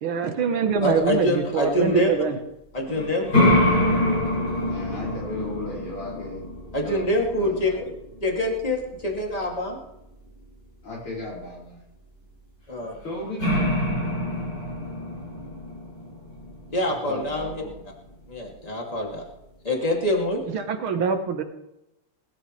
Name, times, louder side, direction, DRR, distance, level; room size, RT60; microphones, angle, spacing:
voice 1, 0.0-2.4 20.5-21.4, right 6 dB, 70° right, 8 dB, 2.0 m, -24 dB
voice 2, 0.8-2.1 2.7-3.6 6.7-7.9 8.2-9.8 12.7-12.9 16.7-17.6 18.3-19.2 19.6-20.4, left 1 dB, 15° left, 0 dB, 2.6 m, -25 dB
Picking at a Giant Fan, 2.9-9.6 12.9-13.0 13.4-17.7, left 1 dB, 40° left, 7.6 m, -26 dB
voice 3, 4.7-6.5 6.8-7.1 7.4-7.8 10.8-11.8 13.0-13.6 17.0-17.8, left 2 dB, 90° left, -4 dB, 6.7 m, -35 dB
20.5 x 13.0 x 3.3 m, 0.88 s
omnidirectional pair, 2.4 m